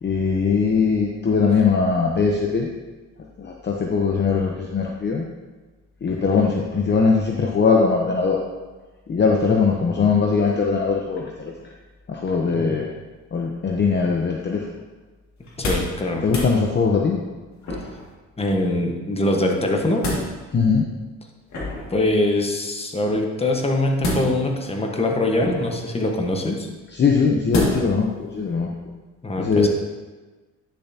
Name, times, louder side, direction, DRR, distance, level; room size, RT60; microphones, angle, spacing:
voice 1, 0.0-2.7 3.4-5.3 6.0-8.4 9.1-11.5 12.1-12.9 13.3-14.7 16.2-17.2 20.5-20.9 26.9-28.7 29.4-29.7, left 5 dB, 35° left, 0 dB, 0.8 m, -20 dB
sound 1, 15.4-16.0 16.2-16.5 17.6-18.1 19.6-20.3 21.5-22.0 24.0-24.6 25.4-25.9 27.5-28.0 28.4-28.5, left 1 dB, 65° left, 2.2 m, -27 dB
voice 2, 15.6-16.2 18.4-20.0 21.9-26.7 29.2-29.7, left 1 dB, 20° left, 2 dB, 1.3 m, -23 dB
10.0 x 7.0 x 2.9 m, 1.3 s
cardioid pair, 90°, 30 cm